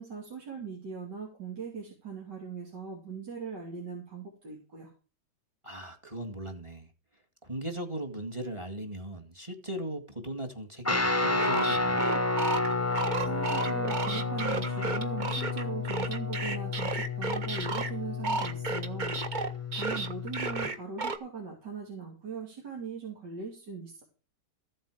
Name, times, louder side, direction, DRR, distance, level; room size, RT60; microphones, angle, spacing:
voice 1, 0.0-4.9 13.2-24.0, right 6 dB, 75° right, 3.5 m, -40 dB
voice 2, 5.6-6.9 7.4-12.0, right 1 dB, 15° right, 2.0 m, -38 dB
Guitar, 10.8-20.7, left 3 dB, 15° left, 0.5 m, -31 dB
sound 1, 11.4-17.9 18.2-21.2, right 3 dB, 35° right, 0.9 m, -33 dB
14.5 x 7.7 x 5.0 m
omnidirectional pair, 1.8 m